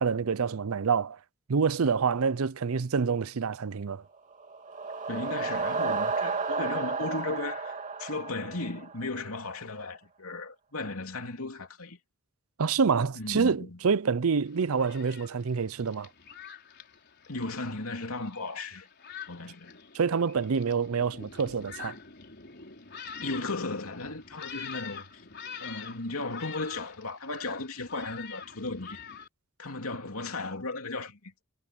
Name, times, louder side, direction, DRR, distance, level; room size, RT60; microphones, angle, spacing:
voice 1, 0.0-1.2 1.5-4.0 12.6-16.1 19.9-22.0, right 5 dB, 70° right, 0.6 m, -27 dB
sound 1, 4.3-9.2, right 4 dB, 35° right, 2.8 m, -32 dB
voice 2, 5.1-12.0 13.1-13.8 17.3-18.9 19.3-19.8 23.2-25.2 25.6-29.0 29.6-31.3, left 2 dB, 70° left, 3.1 m, -36 dB
Thunderstorm, 14.5-29.3, left 7 dB, 50° left, 4.7 m, -46 dB
head